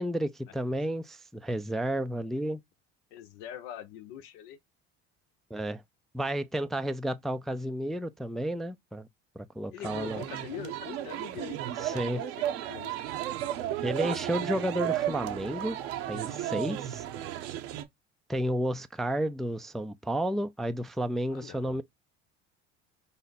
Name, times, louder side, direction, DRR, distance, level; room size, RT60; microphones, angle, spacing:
voice 1, 0.0-2.6 5.5-5.8 6.1-9.1 9.4-10.2 11.8-12.2 13.8-15.8 16.1-17.0 18.3-21.8, right 1 dB, ahead, 0.3 m, -31 dB
voice 2, 3.1-4.6 9.7-13.0 21.3-21.8, left 11 dB, 80° left, 0.8 m, -44 dB
sound 1, 9.8-17.8, right 12 dB, 85° right, 0.8 m, -34 dB
5.4 x 2.1 x 4.0 m
supercardioid pair, 80°, 30 cm